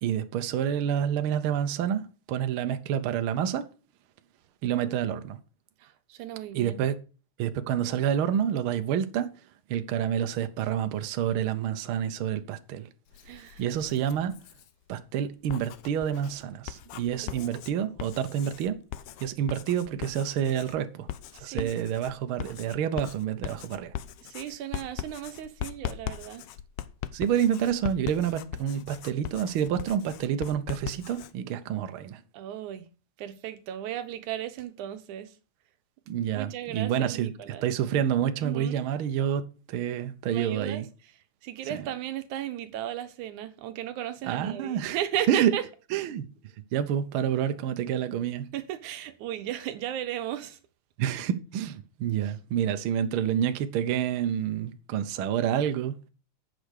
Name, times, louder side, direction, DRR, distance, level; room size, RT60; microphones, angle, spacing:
voice 1, 0.0-3.7 4.6-5.4 6.5-6.9 7.4-9.3 9.7-12.9 13.6-14.4 14.9-18.8 19.2-21.1 21.3-23.9 27.1-32.2 36.1-37.3 37.6-39.4 39.7-40.9 41.7-41.9 44.2-45.0 45.3-45.6 45.9-46.3 46.7-48.5 51.0-56.0, right 9 dB, 70° right, 1.3 m, -28 dB
voice 2, 5.8-6.9 13.3-13.6 17.2-17.6 21.4-21.7 24.2-26.5 32.3-32.9 33.2-35.4 36.3-37.7 38.4-38.8 40.3-40.8 41.4-45.6 48.5-50.6, right 11 dB, 85° right, 2.4 m, -35 dB
Writing, 13.1-14.7 15.3-31.3, left 12 dB, 80° left, 1.4 m, -40 dB
8.6 x 6.1 x 6.5 m
omnidirectional pair, 3.4 m